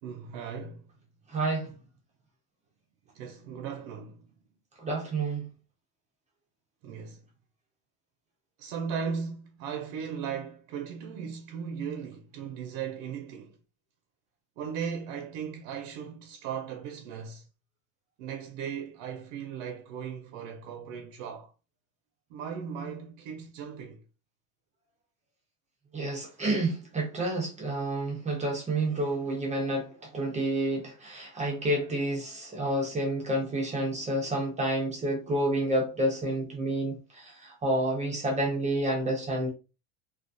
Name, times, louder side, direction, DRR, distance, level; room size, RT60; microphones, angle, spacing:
voice 1, 0.0-0.8 3.1-4.3 6.8-7.2 8.6-13.6 14.6-17.4 18.2-21.5 22.3-24.0, right 7 dB, 90° right, 0.5 m, -37 dB
voice 2, 1.3-1.7 4.8-5.5 25.9-39.5, right 1 dB, 20° right, 0.4 m, -29 dB
2.2 x 2.2 x 2.5 m
cardioid pair, 150°, 40 cm